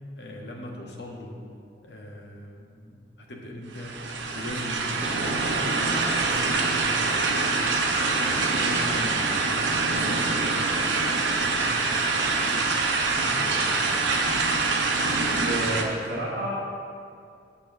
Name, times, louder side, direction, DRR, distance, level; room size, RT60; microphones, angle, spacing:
voice 1, 0.1-1.3 1.8-3.9 4.3-7.5 8.0-11.6 12.1-12.6 13.0-14.0, left 1 dB, 70° left, -1 dB, 1.4 m, -39 dB
sound 1, 3.7-15.8, right 3 dB, 85° right, 0.9 m, -25 dB
voice 2, 15.4-16.5, right 1 dB, 55° right, -9 dB, 1.6 m, -30 dB
8.6 x 4.4 x 7.2 m, 2.4 s
head